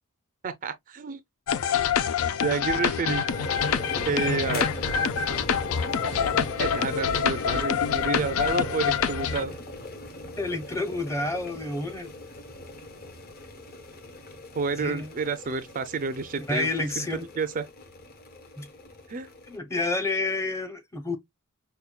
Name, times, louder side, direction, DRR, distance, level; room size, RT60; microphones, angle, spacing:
voice 1, 0.4-1.2 2.4-3.2 4.1-4.8 6.0-6.2 6.6-9.5 14.6-16.7 17.0-17.1 17.4-17.6 19.1-19.3, right 4 dB, 40° right, 0.4 m, -29 dB
sound 1, 1.5-9.4, left 7 dB, 70° left, 0.4 m, -26 dB
sound 2, 3.3-19.6, left 1 dB, 45° left, 0.9 m, -39 dB
voice 2, 10.4-12.1 14.8-15.1 16.4-17.3 18.6-18.7 19.5-21.2, left 2 dB, 15° left, 0.7 m, -29 dB
5.6 x 2.2 x 2.2 m
head